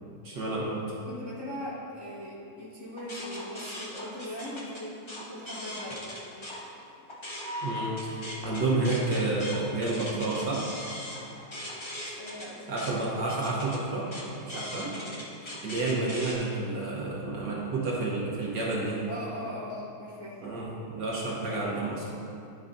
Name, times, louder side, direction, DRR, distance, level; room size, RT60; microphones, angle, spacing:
voice 1, 0.2-0.9 7.6-10.7 12.0-12.1 12.7-14.1 14.5-14.9 15.6-19.1 20.4-22.1, right 2 dB, 60° right, -4 dB, 1.5 m, -30 dB
voice 2, 1.1-6.0 12.2-12.8 14.5-14.7 19.1-20.4, equal, 15° left, -9 dB, 1.4 m, -39 dB
sound 1, 3.0-6.6 7.0-16.3, left 1 dB, 45° left, 0.3 m, -40 dB
11.0 x 4.7 x 3.8 m, 2.6 s
omnidirectional pair, 2.2 m